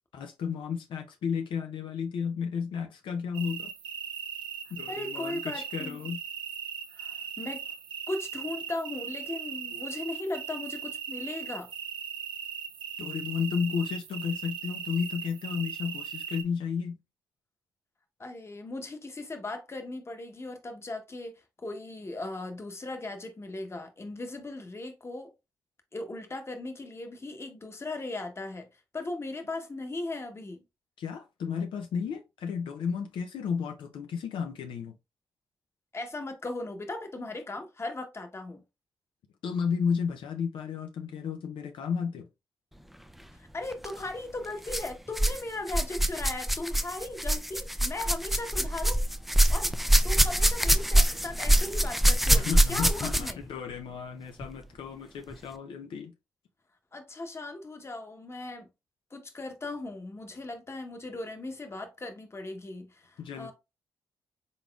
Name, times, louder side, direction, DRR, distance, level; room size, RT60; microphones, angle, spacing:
voice 1, 0.1-3.7 4.7-6.2 13.0-17.0 31.0-34.9 39.4-42.3 52.3-56.1 63.2-63.5, left 6 dB, 75° left, 0.5 m, -33 dB
sound 1, 3.3-16.4, right 7 dB, 70° right, 0.6 m, -39 dB
voice 2, 4.9-6.0 6.9-7.7 8.1-11.7 18.2-25.3 25.9-28.7 28.9-30.6 35.9-38.6 43.4-49.0 49.5-49.8 50.0-53.4 56.9-58.7 59.1-63.5, left 2 dB, 30° left, 1.1 m, -38 dB
sound 2, 43.7-43.9 44.7-45.4 45.7-53.5 54.4-54.5 55.3-55.4, right 1 dB, ahead, 0.4 m, -24 dB
4.0 x 3.6 x 2.3 m
cardioid pair, 60°, 9 cm